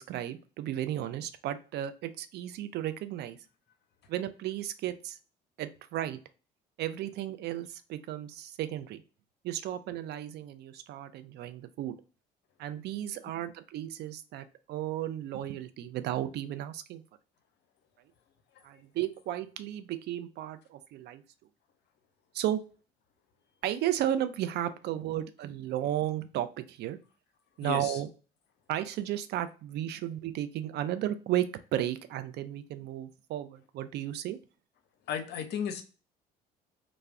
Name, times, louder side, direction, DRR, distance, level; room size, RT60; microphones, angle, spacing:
voice 1, 0.0-3.4 4.1-5.2 5.6-6.2 6.8-9.0 9.4-11.9 12.6-17.0 18.6-21.2 22.3-22.6 23.6-27.0 27.6-28.1 28.7-34.4, right 12 dB, 55° right, 11 dB, 0.4 m, -34 dB
voice 2, 27.6-28.0 35.1-35.8, left 8 dB, 55° left, 7 dB, 0.6 m, -35 dB
2.3 x 2.0 x 3.4 m, 0.36 s
hypercardioid pair, 55°, 21 cm